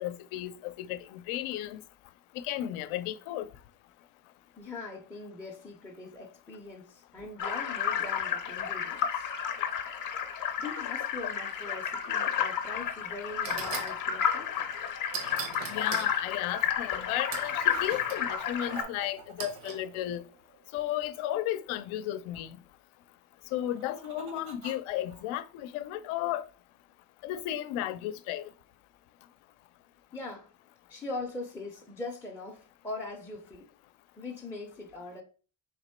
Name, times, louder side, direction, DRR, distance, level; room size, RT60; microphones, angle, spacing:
voice 1, 0.0-1.8 2.3-3.5 15.7-20.2 20.7-22.6 23.5-26.4 27.2-28.5, left 13 dB, 85° left, 0.6 m, -34 dB
voice 2, 4.6-9.3 10.6-14.6 30.1-30.5 30.9-33.7 34.2-35.2, left 2 dB, 5° left, 0.4 m, -41 dB
sound 1, 7.4-18.8, left 8 dB, 45° left, 0.6 m, -31 dB
sound 2, 12.7-12.9 13.4-14.0 15.1-16.1 17.3-18.2 19.4-19.8, right 8 dB, 70° right, 0.8 m, -39 dB
sound 3, 16.8-18.0 18.3-20.8 23.5-25.2, right 5 dB, 85° right, 1.2 m, -49 dB
3.5 x 2.9 x 4.3 m
cardioid pair, 150°, 47 cm